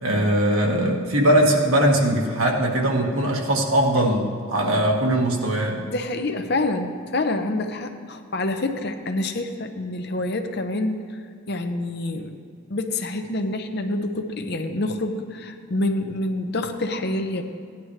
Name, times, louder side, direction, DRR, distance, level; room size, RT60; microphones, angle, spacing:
voice 1, 0.0-5.8, right 1 dB, 80° right, -1 dB, 1.8 m, -20 dB
voice 2, 5.9-11.2 11.5-12.3 12.7-17.4, left 2 dB, 50° left, 6 dB, 0.8 m, -27 dB
17.0 x 10.5 x 3.2 m, 2.3 s
head